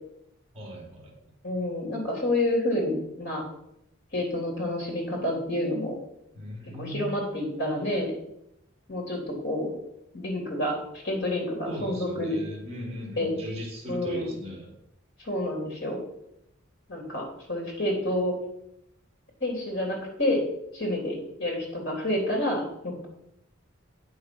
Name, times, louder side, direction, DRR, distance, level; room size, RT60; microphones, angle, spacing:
voice 1, 0.5-1.1 6.3-7.3 11.6-14.7, equal, 30° right, -3 dB, 3.4 m, -37 dB
voice 2, 1.4-3.4 4.1-5.9 6.8-8.1 8.9-9.2 9.4-9.7 10.1-10.8 11.0-12.4 13.2-13.3 13.9-14.3 15.2-16.0 16.9-18.3 19.4-20.4 20.7-23.1, left 1 dB, 55° left, -1 dB, 3.5 m, -29 dB
8.7 x 6.5 x 6.3 m, 0.80 s
head